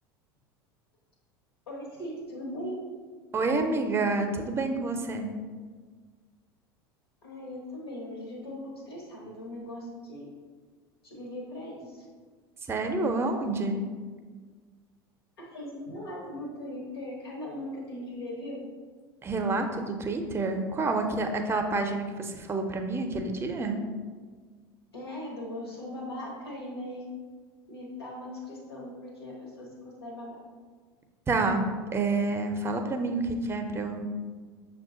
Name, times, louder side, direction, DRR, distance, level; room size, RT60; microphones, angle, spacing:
voice 1, 1.7-2.8 7.2-10.3 11.0-12.1 15.4-18.6 24.9-27.1 27.7-30.4, left 1 dB, 85° left, -2 dB, 1.0 m, -39 dB
voice 2, 3.3-5.3 12.7-13.8 19.2-23.8 31.3-31.7 31.9-34.0, right 3 dB, 20° right, 5 dB, 0.5 m, -28 dB
6.0 x 2.2 x 3.7 m, 1.5 s
hypercardioid pair, 80°, 13 cm